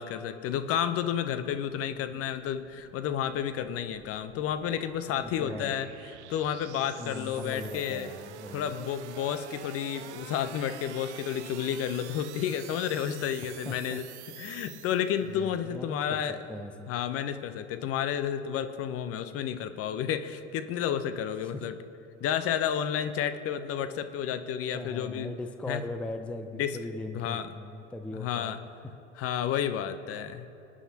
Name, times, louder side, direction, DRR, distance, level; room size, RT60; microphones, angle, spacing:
voice 1, 0.0-5.9 6.3-8.1 8.5-14.0 14.4-16.4 16.9-21.8 22.2-25.3 25.7-25.8 26.6-26.8 27.1-27.5 28.1-28.6 29.1-30.5, left 9 dB, 40° left, 10 dB, 0.9 m, -31 dB
sound 1, 1.4-15.5, right 12 dB, 70° right, 0.7 m, -48 dB
voice 2, 5.0-5.9 7.0-8.7 13.4-14.0 15.3-16.2 16.5-16.9 21.4-21.7 24.7-28.9, left 2 dB, 5° left, 8 dB, 0.6 m, -40 dB
24.5 x 9.9 x 2.9 m, 2.9 s
figure-of-eight pair, 80°, 36 cm